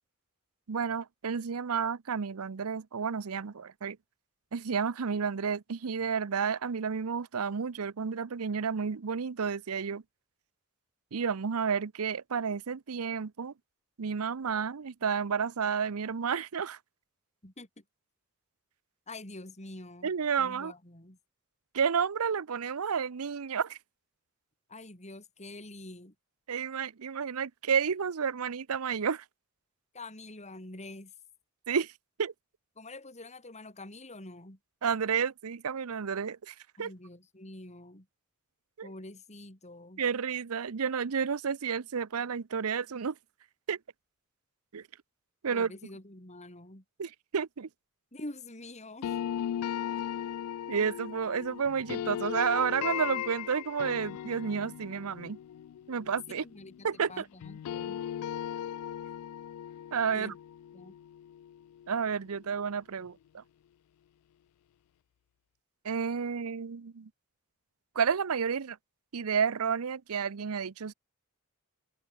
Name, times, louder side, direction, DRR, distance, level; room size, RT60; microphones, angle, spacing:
voice 1, 0.7-4.0 4.5-10.0 11.1-13.5 14.0-16.8 20.0-20.7 21.7-23.8 26.5-29.2 31.7-31.9 32.2-32.3 34.8-36.9 38.8-38.9 40.0-43.1 43.7-43.8 44.7-44.8 45.4-45.7 47.0-47.7 50.7-55.4 55.9-56.4 56.8-57.2 59.9-60.3 61.9-63.4 65.8-67.1 67.9-68.8 69.1-70.9, right 6 dB, 75° right, 0.6 m, -31 dB
voice 2, 17.4-17.8 19.1-20.1 20.4-21.2 24.7-26.1 29.9-31.1 32.8-34.6 36.8-38.1 38.8-40.0 45.5-46.8 48.1-49.1 56.3-58.0 60.1-60.4 60.7-60.9, left 2 dB, 30° left, 4.5 m, -46 dB
sound 1, 49.0-57.1 57.4-62.4, left 10 dB, 90° left, 0.3 m, -38 dB
head